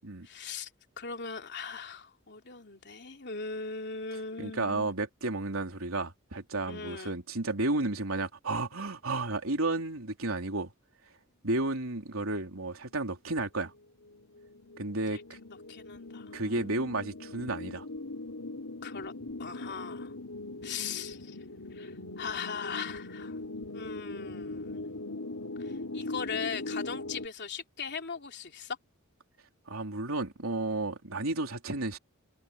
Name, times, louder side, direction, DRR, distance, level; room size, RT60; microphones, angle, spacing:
voice 1, 0.2-0.7 1.0-4.9 6.7-7.2 15.7-16.7 18.8-19.1 19.4-20.1 20.6-21.4 21.7-23.4 23.7-24.8 25.6-28.8, left 5 dB, 55° left, 3.2 m, -39 dB
voice 2, 4.4-10.7 11.4-13.7 14.8-15.4 16.3-17.9 29.7-32.0, right 2 dB, 80° right, 3.8 m, -32 dB
sound 1, 13.8-27.3, left 2 dB, 80° left, 3.8 m, -40 dB
head